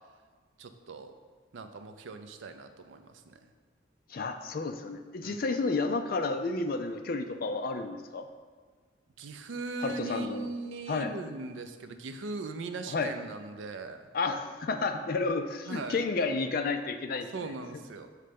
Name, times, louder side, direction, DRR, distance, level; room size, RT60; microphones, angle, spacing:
voice 1, 0.6-1.1 1.5-3.4 5.2-5.4 9.2-14.1 15.7-16.0 17.3-18.1, right 3 dB, 70° right, 8 dB, 0.5 m, -39 dB
voice 2, 4.1-8.3 9.8-10.5 10.9-11.1 12.9-13.1 14.1-17.5, left 3 dB, 45° left, 7 dB, 0.4 m, -31 dB
6.6 x 3.2 x 5.1 m, 1.5 s
head